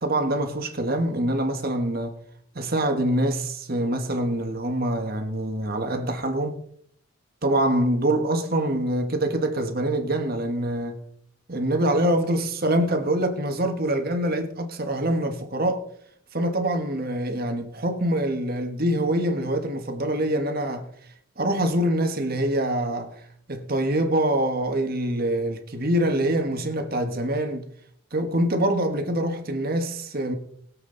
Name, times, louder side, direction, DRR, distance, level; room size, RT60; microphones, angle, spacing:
voice 1, 0.0-2.2 2.5-6.6 7.4-11.0 11.5-15.8 16.3-20.9 21.4-23.2 23.5-27.7 28.1-30.3, right 1 dB, 45° right, 1.6 m, -25 dB
21.0 x 7.8 x 4.0 m
head